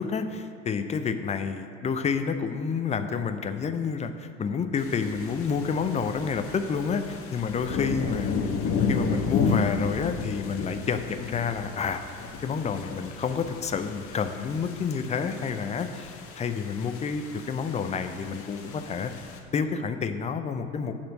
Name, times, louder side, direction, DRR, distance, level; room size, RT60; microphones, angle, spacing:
voice 1, 0.0-8.3 8.7-12.0 12.4-19.1 19.5-20.9, left 6 dB, 20° left, 9 dB, 0.4 m, -29 dB
sound 1, 4.8-19.4, left 5 dB, 40° left, 1.0 m, -33 dB
8.7 x 4.3 x 6.3 m, 2.3 s
figure-of-eight pair, 65°, 36 cm